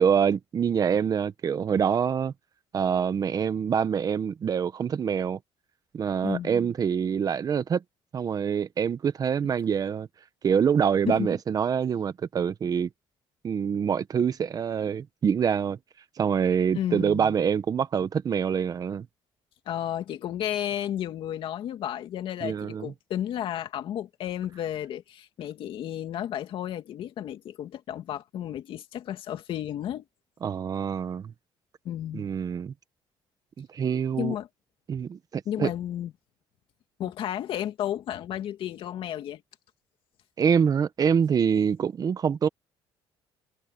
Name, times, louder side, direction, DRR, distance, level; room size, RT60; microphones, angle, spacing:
voice 1, 0.0-2.3 2.7-5.4 5.9-7.8 8.1-10.1 10.4-12.9 13.4-15.8 16.2-19.1 22.4-22.9 30.4-31.3 32.1-32.7 33.6-34.3 34.9-35.7 40.4-42.5, right 7 dB, 40° right, 1.2 m, -25 dB
voice 2, 6.2-6.5 11.1-11.3 16.7-17.3 19.7-30.0 31.8-32.3 34.2-34.5 35.5-36.1 37.0-39.4, left 11 dB, 65° left, 2.4 m, -32 dB
cardioid pair, 115°, 10 cm